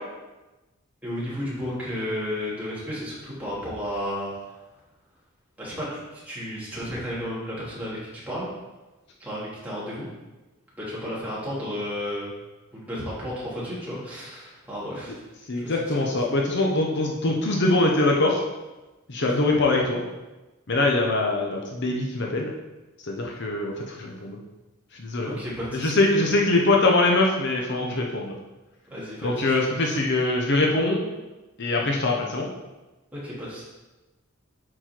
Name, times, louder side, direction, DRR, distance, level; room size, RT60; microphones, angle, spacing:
voice 1, 1.0-4.5 5.6-8.5 9.2-10.1 10.8-12.3 12.7-15.1 15.6-16.2 25.2-26.4 28.9-29.5 33.1-33.6, equal, 10° right, -8 dB, 2.8 m, -33 dB
voice 2, 15.5-18.4 19.1-20.0 20.7-22.5 23.0-24.4 25.0-25.4 25.7-28.4 29.2-31.0 31.6-32.5, left 2 dB, 55° left, 0 dB, 0.9 m, -23 dB
9.0 x 4.4 x 4.5 m, 1.1 s
head